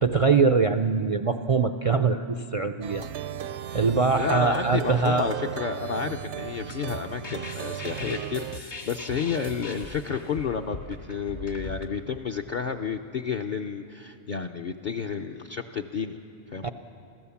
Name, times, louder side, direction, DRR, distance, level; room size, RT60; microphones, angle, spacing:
voice 1, 0.0-3.1 3.7-5.2 16.6-16.7, right 4 dB, 55° right, 8 dB, 0.4 m, -23 dB
Plucked string instrument, 2.8-8.6, right 10 dB, 70° right, 0.9 m, -35 dB
voice 2, 4.1-16.2 16.5-16.7, left 6 dB, 50° left, 2 dB, 0.7 m, -31 dB
sound 1, 6.4-11.9, left 2 dB, 65° left, 2.1 m, -40 dB
26.0 x 16.5 x 7.1 m, 2.7 s
omnidirectional pair, 1.2 m